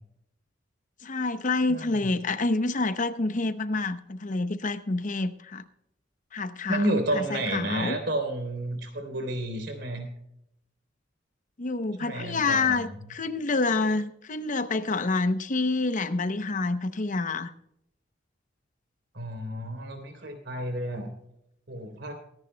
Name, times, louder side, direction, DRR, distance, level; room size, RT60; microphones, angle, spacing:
voice 1, 1.0-5.6 6.3-6.8 7.1-8.0 11.6-17.5, left 3 dB, 45° left, 12 dB, 0.7 m, -28 dB
voice 2, 1.7-2.1 6.7-10.1 12.0-13.0 19.1-21.1 21.7-22.1, right 1 dB, 65° right, 5 dB, 3.3 m, -31 dB
24.0 x 10.5 x 2.2 m, 0.77 s
head